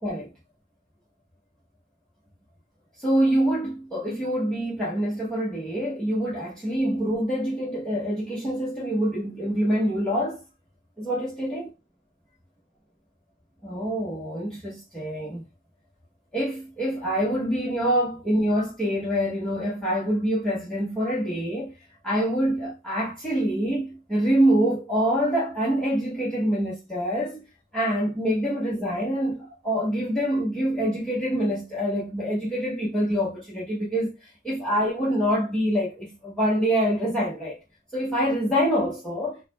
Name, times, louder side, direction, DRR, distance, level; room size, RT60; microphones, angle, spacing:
voice 1, 0.0-0.3 3.0-10.4 11.0-11.7 13.6-15.4 16.3-21.7 22.0-27.5 27.7-37.6 37.9-39.4, equal, 5° left, 0.9 m, -25 dB
4.8 x 2.2 x 3.2 m
head